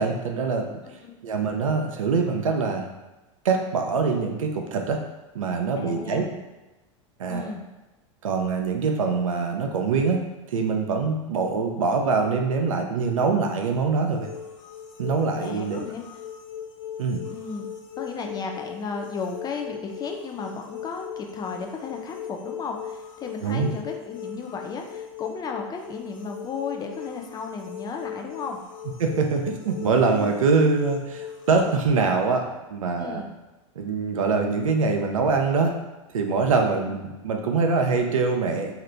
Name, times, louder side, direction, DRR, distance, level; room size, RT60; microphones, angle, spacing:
voice 1, 0.0-0.7 1.2-2.9 3.4-5.0 5.3-6.2 7.2-7.5 8.2-10.2 10.5-14.3 15.0-15.8 17.0-17.2 23.4-23.7 29.0-33.2 33.8-35.7 36.1-38.7, right 4 dB, 90° right, 3 dB, 0.5 m, -24 dB
voice 2, 0.8-1.2 5.8-6.4 7.3-7.7 15.4-16.0 17.3-17.7 18.0-28.6 33.0-33.3 36.6-36.7, left 4 dB, 25° left, 3 dB, 0.4 m, -34 dB
sound 1, 14.1-31.8, left 9 dB, 80° left, 0.6 m, -39 dB
2.8 x 2.4 x 3.3 m, 1.1 s
hypercardioid pair, 100°, 17 cm